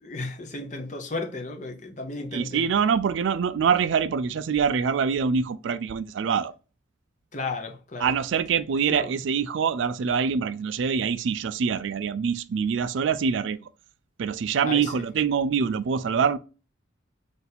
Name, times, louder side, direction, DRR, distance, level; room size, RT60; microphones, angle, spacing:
voice 1, 0.0-2.8 7.3-8.1 8.9-9.1 14.7-15.0, left 3 dB, 35° left, 0.8 m, -34 dB
voice 2, 2.3-6.5 8.0-13.7 14.2-16.4, right 6 dB, 70° right, 0.3 m, -25 dB
4.1 x 2.6 x 4.1 m
head